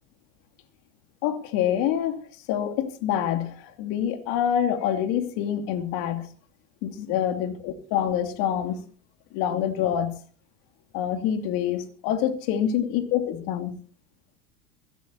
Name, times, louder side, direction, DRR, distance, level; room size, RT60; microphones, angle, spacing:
voice 1, 1.2-2.2 2.5-6.3 6.8-8.8 9.3-10.2 10.9-13.7, left 9 dB, 60° left, 8 dB, 3.1 m, -26 dB
22.5 x 16.0 x 2.8 m, 0.40 s
hypercardioid pair, 85°, 39 cm